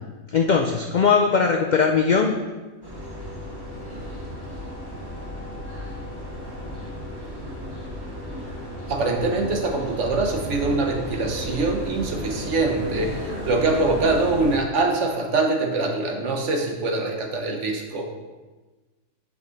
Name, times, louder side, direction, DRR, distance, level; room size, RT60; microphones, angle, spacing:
voice 1, 0.3-2.3, left 5 dB, 65° left, 3 dB, 0.4 m, -19 dB
sound 1, 2.8-14.6, equal, 20° right, 1.5 m, -34 dB
voice 2, 8.9-18.1, right 3 dB, 65° right, 2 dB, 1.3 m, -24 dB
8.1 x 5.4 x 3.9 m, 1.2 s
omnidirectional pair, 1.4 m